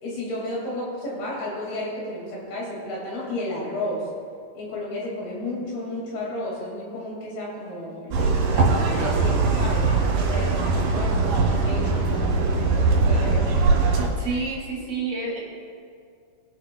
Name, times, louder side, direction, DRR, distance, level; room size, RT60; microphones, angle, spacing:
voice 1, 0.0-4.1 4.6-9.9 10.2-13.6, left 1 dB, 65° left, -4 dB, 3.9 m, -32 dB
sound 1, 8.1-14.1, right 3 dB, 75° right, 3.8 m, -21 dB
voice 2, 14.0-15.4, right 4 dB, 55° right, -6 dB, 4.6 m, -29 dB
22.5 x 7.8 x 2.2 m, 2.3 s
omnidirectional pair, 4.8 m